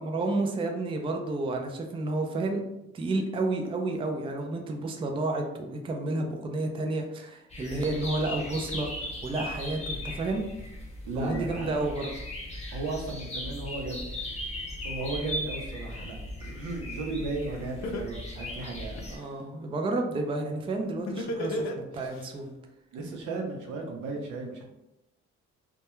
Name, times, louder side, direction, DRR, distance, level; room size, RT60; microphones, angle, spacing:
voice 1, 0.0-2.6 2.9-10.5 11.1-12.1 19.1-22.5, right 2 dB, 20° right, 3 dB, 0.3 m, -31 dB
sound 1, 7.5-19.2, left 1 dB, 20° left, 0.6 m, -38 dB
voice 2, 11.1-11.8 12.7-14.0 14.8-19.0 22.0-22.1 22.9-24.6, right 3 dB, 85° right, 1 dB, 0.6 m, -35 dB
Laughter, 17.3-17.4 17.8-19.3 21.1-22.3, left 1 dB, 65° left, 0.5 m, -32 dB
2.2 x 2.2 x 2.9 m, 0.89 s
cardioid pair, 90°, 30 cm